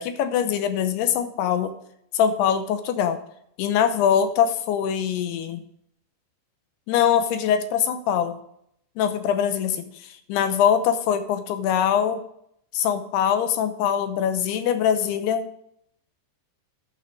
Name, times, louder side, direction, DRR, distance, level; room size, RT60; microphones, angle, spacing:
voice 1, 0.0-1.7 2.1-3.2 3.6-5.6 6.9-8.4 9.0-12.2 12.7-15.5, left 8 dB, 85° left, 10 dB, 2.9 m, -23 dB
11.0 x 6.8 x 5.1 m, 0.71 s
omnidirectional pair, 4.7 m